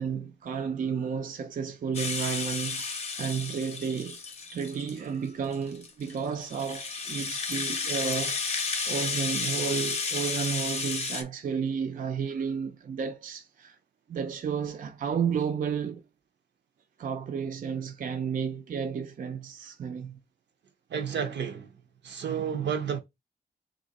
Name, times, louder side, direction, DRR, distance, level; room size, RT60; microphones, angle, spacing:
voice 1, 0.0-4.2 4.5-8.4 8.9-13.8 14.1-16.0 17.0-20.2, right 6 dB, 50° right, 0.4 m, -32 dB
Rattle (instrument), 1.9-5.0 5.5-11.2, left 4 dB, 35° left, 0.6 m, -32 dB
voice 2, 20.9-21.7 22.0-23.0, right 7 dB, 80° right, 0.7 m, -31 dB
3.6 x 2.6 x 4.0 m
wide cardioid pair, 175°, 18 cm